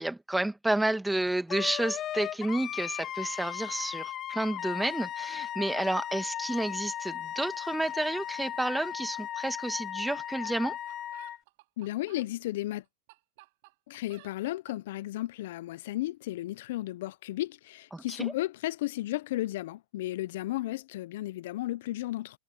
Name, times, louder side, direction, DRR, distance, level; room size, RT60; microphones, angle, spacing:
voice 1, 0.0-10.8 17.9-18.3, right 1 dB, 5° right, 1.9 m, -31 dB
Wind instrument woodwind instrument, 1.5-11.4, left 11 dB, 35° left, 1.0 m, -37 dB
sound 1, 9.7-9.8 10.1-10.2 10.4-12.3 12.8-14.8, right 23 dB, 60° right, 5.0 m, -55 dB
voice 2, 11.8-12.8 13.9-22.4, left 16 dB, 70° left, 0.7 m, -34 dB
hypercardioid pair, 100°, 0 cm